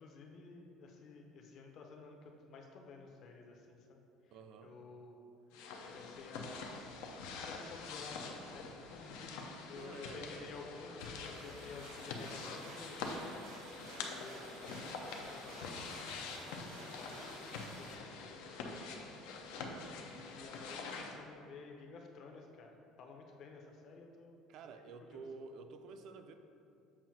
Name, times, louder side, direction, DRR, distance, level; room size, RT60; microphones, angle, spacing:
voice 1, 0.0-5.2 5.8-6.9 7.3-13.2 13.9-18.8 20.0-24.4 25.0-25.2, left 4 dB, 40° left, 2 dB, 0.6 m, -53 dB
voice 2, 4.3-4.7 9.8-10.5 11.9-12.2 19.6-20.0 24.5-26.3, right 4 dB, 45° right, 7 dB, 0.4 m, -51 dB
sound 1, 5.5-21.2, left 4 dB, 85° left, 0.6 m, -45 dB
sound 2, 11.0-17.9, right 2 dB, 90° right, 1.4 m, -53 dB
7.3 x 2.6 x 5.8 m, 2.5 s
cardioid pair, 175°, 0 cm